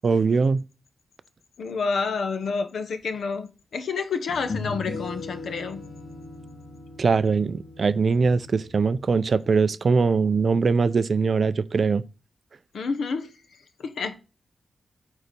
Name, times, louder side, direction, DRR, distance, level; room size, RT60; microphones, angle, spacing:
voice 1, 0.0-0.6 7.0-12.0, right 4 dB, 45° right, 0.4 m, -22 dB
voice 2, 1.6-5.8 12.7-13.3 13.8-14.1, left 4 dB, 85° left, 1.0 m, -29 dB
sound 1, 3.2-3.3 4.3-9.5, left 3 dB, 45° left, 1.8 m, -38 dB
9.0 x 4.0 x 5.2 m
wide cardioid pair, 175°, 0 cm